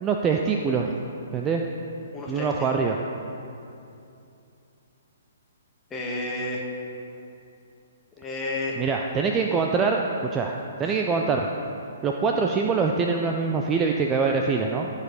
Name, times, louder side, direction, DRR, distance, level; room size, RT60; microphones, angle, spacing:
voice 1, 0.0-0.9 1.3-1.6 2.3-3.0 8.8-10.0 10.3-11.5 12.0-14.9, right 5 dB, 20° right, 2 dB, 0.5 m, -24 dB
voice 2, 2.1-2.7 5.9-6.6 8.2-8.8 10.9-11.0, left 2 dB, 15° left, -2 dB, 1.6 m, -31 dB
14.5 x 5.0 x 4.9 m, 2.7 s
figure-of-eight pair, 125°, 0 cm